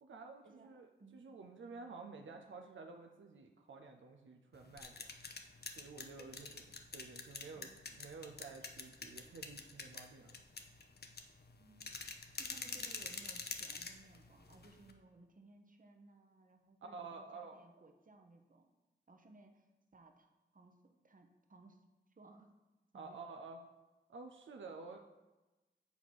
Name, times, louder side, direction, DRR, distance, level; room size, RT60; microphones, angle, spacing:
voice 1, 0.0-5.1 5.8-6.6 6.9-10.3 16.9-17.6 22.9-23.6 24.1-25.0, right 4 dB, 85° right, 3 dB, 0.5 m, -51 dB
sound 1, 4.5-14.9, left 4 dB, 55° left, 0.7 m, -47 dB
voice 2, 6.2-6.5 7.5-7.9 11.6-11.9 12.4-18.7 19.1-19.7 19.9-20.3 20.5-21.8 22.2-22.5 22.9-23.2, right 3 dB, 45° right, 4 dB, 0.9 m, -61 dB
6.8 x 4.1 x 4.6 m, 1.1 s
cardioid pair, 45°, 19 cm